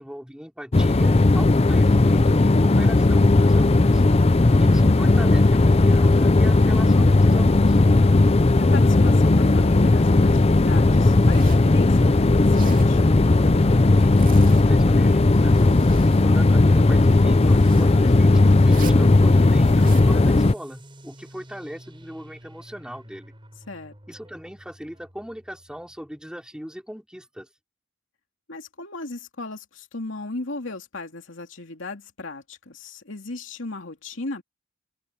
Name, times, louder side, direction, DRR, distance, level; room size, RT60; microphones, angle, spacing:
voice 1, 0.0-4.0 4.5-7.8 13.9-15.8 16.2-23.3 24.1-27.5, equal, 5° right, 4.5 m, -39 dB
sound 1, 0.7-20.5, left 2 dB, 30° left, 0.6 m, -16 dB
voice 2, 8.1-13.0 23.7-23.9 28.5-34.4, left 2 dB, 80° left, 2.6 m, -36 dB
Zipper (clothing), 11.2-11.7 12.4-12.9 13.9-14.8 15.3-16.3 17.4-17.9 18.6-19.1 19.6-20.1, right 5 dB, 45° right, 2.9 m, -42 dB
sound 2, 18.9-26.2, right 1 dB, 25° right, 7.6 m, -48 dB
open air
head